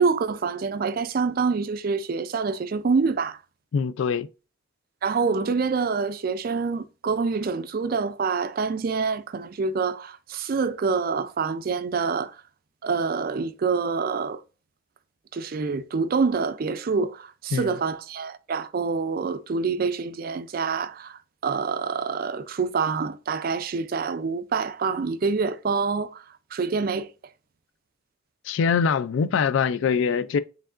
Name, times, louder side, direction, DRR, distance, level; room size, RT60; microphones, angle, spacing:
voice 1, 0.0-3.4 5.0-12.4 12.8-14.4 15.3-26.2 26.5-27.1, right 5 dB, 45° right, 0.3 m, -26 dB
voice 2, 3.7-4.3 17.5-17.7 28.4-30.4, left 6 dB, 65° left, 0.3 m, -23 dB
4.6 x 3.7 x 2.4 m
head